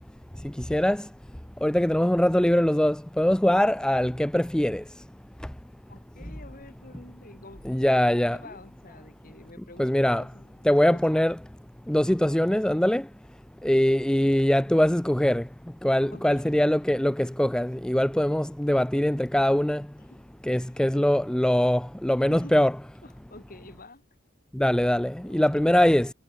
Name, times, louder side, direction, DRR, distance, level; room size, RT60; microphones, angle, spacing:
voice 1, 0.7-1.0 1.6-4.8 7.7-8.4 9.8-10.2 10.7-11.3 11.9-13.0 13.6-15.4 15.8-19.8 20.5-22.7 24.6-26.1, left 1 dB, 5° left, 0.4 m, -22 dB
voice 2, 5.9-11.2 13.8-14.3 16.1-16.5 20.0-20.3 20.7-21.1 22.3-22.7 23.0-24.0 25.2-25.6, left 2 dB, 45° left, 6.1 m, -49 dB
head